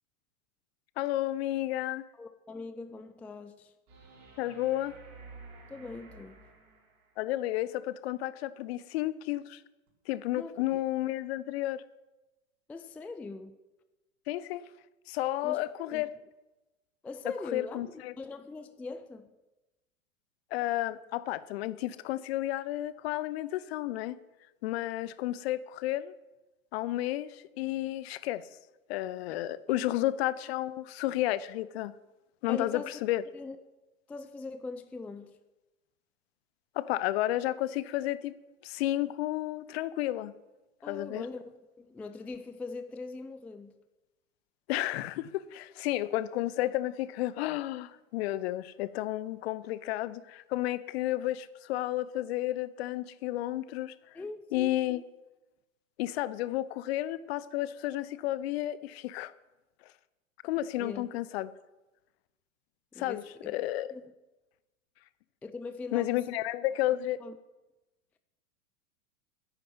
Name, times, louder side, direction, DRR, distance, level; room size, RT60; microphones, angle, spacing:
voice 1, 1.0-2.1 4.4-4.9 7.2-9.6 10.1-11.8 14.3-14.6 15.1-16.1 17.5-18.1 20.5-24.2 24.6-26.1 26.7-28.4 28.9-31.9 32.4-33.2 36.8-38.4 38.6-40.3 40.9-41.2 44.7-53.9 54.5-55.0 56.0-59.3 60.4-61.5 63.0-63.9 65.9-67.2, left 15 dB, 50° left, 0.9 m, -32 dB
voice 2, 2.2-3.7 5.7-6.4 10.3-10.8 12.7-13.6 15.4-16.1 17.0-19.3 29.7-29.9 32.5-32.9 33.3-33.6 34.1-35.4 40.8-43.8 54.1-55.0 60.7-61.1 62.9-63.5 63.9-64.1 65.4-66.4 67.2-67.4, left 3 dB, 5° left, 0.4 m, -42 dB
sound 1, 3.9-7.2 9.9-10.0, right 3 dB, 45° right, 5.3 m, -52 dB
10.5 x 10.0 x 9.2 m
figure-of-eight pair, 95°, 41 cm